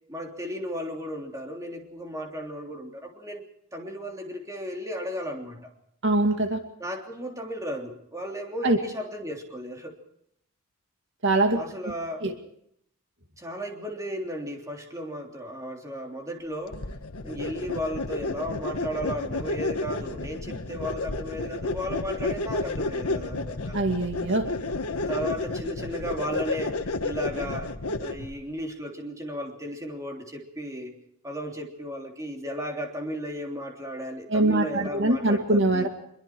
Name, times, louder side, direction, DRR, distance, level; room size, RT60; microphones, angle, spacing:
voice 1, 0.1-3.4 3.7-5.7 6.8-10.0 11.6-12.3 13.4-16.8 17.2-23.8 25.1-35.9, equal, 15° right, 1 dB, 3.3 m, -35 dB
voice 2, 6.0-6.6 8.6-8.8 11.2-11.6 12.2-12.3 23.7-24.5 34.3-35.9, right 2 dB, 55° right, 5 dB, 2.2 m, -23 dB
sound 1, 16.7-28.4, left 2 dB, 80° left, 1.4 m, -31 dB
25.5 x 22.5 x 4.6 m, 0.74 s
head